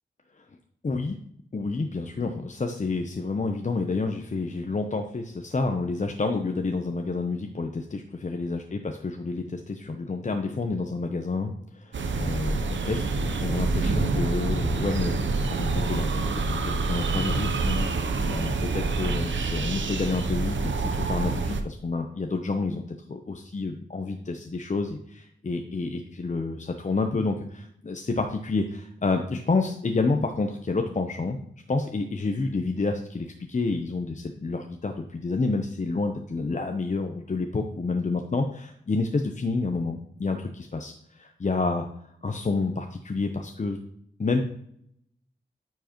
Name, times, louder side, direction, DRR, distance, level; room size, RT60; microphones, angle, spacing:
voice 1, 0.8-1.2 1.5-13.0 13.4-15.1 15.5-22.8 23.1-25.2 25.4-31.4 31.7-41.9 42.2-43.8 44.2-44.4, left 3 dB, 40° left, 4 dB, 0.7 m, -29 dB
sound 1, 11.9-21.6, right 3 dB, 70° right, 0.7 m, -27 dB
9.2 x 4.7 x 3.0 m, 0.71 s
cardioid pair, 45°, 20 cm